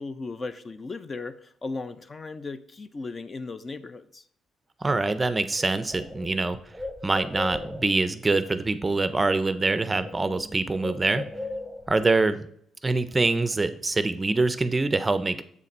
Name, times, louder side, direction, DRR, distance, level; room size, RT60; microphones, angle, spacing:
voice 1, 0.0-4.2, left 3 dB, 35° left, 12 dB, 0.4 m, -36 dB
voice 2, 4.8-6.6 7.0-11.2 11.9-12.5 12.8-15.4, right 3 dB, 20° right, 12 dB, 0.5 m, -24 dB
Bird, 5.1-5.2 5.5-8.0 9.1-9.3 9.6-12.0, left 2 dB, 5° left, 1.1 m, -37 dB
7.1 x 4.1 x 4.2 m, 0.65 s
cardioid pair, 90°, 0 cm